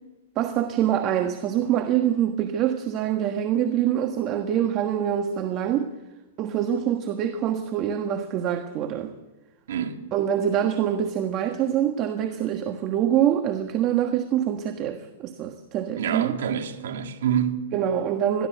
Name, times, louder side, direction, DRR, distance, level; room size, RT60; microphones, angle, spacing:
voice 1, 0.3-5.9 6.4-9.1 10.1-16.3 17.7-18.5, right 10 dB, 35° right, 1.4 m, -25 dB
voice 2, 9.7-10.1 16.0-17.7, right 8 dB, 75° right, 2.2 m, -27 dB
21.5 x 15.0 x 8.0 m
hypercardioid pair, 145°, 0 cm